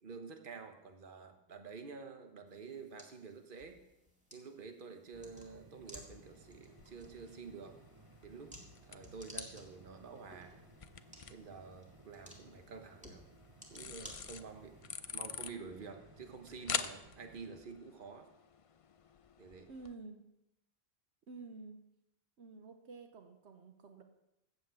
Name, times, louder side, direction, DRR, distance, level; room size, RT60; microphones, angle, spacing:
voice 1, 0.0-3.8 4.3-7.8 8.2-8.5 8.8-10.6 11.3-13.2 13.7-14.8 15.1-18.3 19.4-19.7, right 5 dB, 50° right, 6 dB, 1.3 m, -49 dB
sound 1, 2.5-14.8, equal, 5° right, 1.9 m, -57 dB
sound 2, 5.1-17.6, right 3 dB, 25° right, 0.7 m, -61 dB
sound 3, 5.8-19.9, left 6 dB, 45° left, 0.5 m, -47 dB
voice 2, 19.7-20.2 21.3-21.8 22.4-24.0, right 3 dB, 85° right, 6 dB, 1.3 m, -50 dB
13.5 x 5.6 x 8.2 m, 0.86 s
omnidirectional pair, 1.1 m